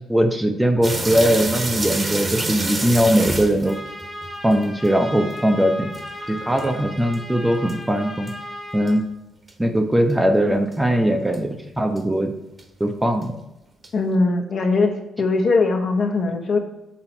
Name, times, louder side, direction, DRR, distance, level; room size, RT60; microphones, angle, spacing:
voice 1, 0.0-3.8 4.4-5.9 6.3-8.3 8.7-9.0 9.6-12.3 12.8-13.3, equal, 10° right, 5 dB, 0.7 m, -20 dB
sound 1, 0.8-4.9 5.3-5.4 5.9-7.2 7.7-7.8 8.3-8.4 8.9-9.0 9.5-9.6 10.1-10.2 10.7-10.8 11.3-11.4 12.0-12.1 12.6-12.7 13.2-13.3 13.8-13.9, right 2 dB, 30° right, 1.1 m, -27 dB
Trumpet, 3.6-9.0, left 1 dB, 5° left, 1.2 m, -36 dB
voice 2, 13.9-16.6, left 3 dB, 55° left, 2 dB, 1.1 m, -20 dB
5.8 x 3.9 x 6.0 m, 0.91 s
cardioid pair, 90°, 0 cm